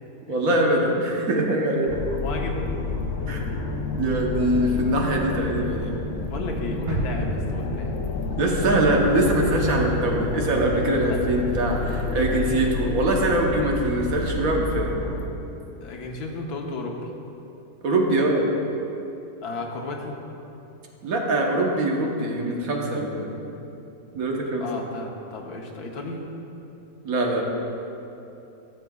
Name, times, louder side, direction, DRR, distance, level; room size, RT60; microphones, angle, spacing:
voice 1, 0.3-1.9 3.3-3.4 3.9-6.0 8.4-14.9 17.8-18.5 21.0-23.5 24.1-24.7 27.0-27.4, right 1 dB, 70° right, 0 dB, 1.4 m, -23 dB
sound 1, 1.9-15.2, left 3 dB, 60° left, 1.0 m, -29 dB
voice 2, 2.2-2.6 4.6-4.7 6.3-7.9 11.1-11.2 15.8-17.0 19.4-20.1 24.6-26.3, left 3 dB, 80° left, 1 dB, 1.4 m, -33 dB
sound 2, 6.9-8.8 9.2-9.3, right 2 dB, 85° right, 1.8 m, -31 dB
14.5 x 7.6 x 2.3 m, 2.9 s
omnidirectional pair, 1.6 m